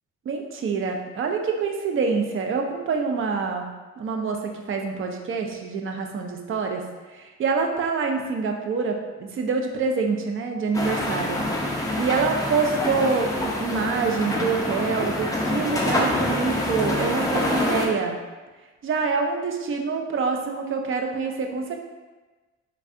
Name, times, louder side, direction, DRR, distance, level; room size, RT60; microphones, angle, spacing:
voice 1, 0.3-3.7 4.0-11.4 12.0-18.2 18.8-21.9, right 4 dB, 45° right, 3 dB, 0.4 m, -26 dB
sound 1, 10.7-17.9, left 1 dB, 10° left, 0.4 m, -26 dB
3.2 x 2.5 x 2.5 m, 1.2 s
cardioid pair, 90°, 30 cm